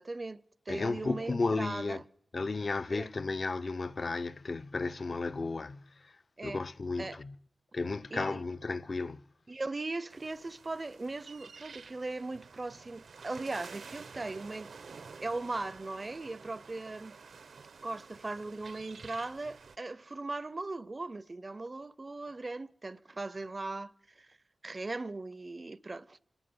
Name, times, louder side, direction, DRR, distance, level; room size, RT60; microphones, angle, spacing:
voice 1, 0.0-2.0 2.9-3.1 6.4-6.6 7.0-7.2 8.1-8.4 9.5-14.7 15.2-17.1 17.8-24.4 24.6-26.2, right 2 dB, 30° right, 0.8 m, -39 dB
voice 2, 0.7-2.0 2.3-7.4 7.7-9.2, left 3 dB, 45° left, 0.9 m, -34 dB
sound 1, 10.1-19.8, right 5 dB, 75° right, 1.3 m, -50 dB
25.5 x 12.0 x 9.7 m
wide cardioid pair, 115°, 0 cm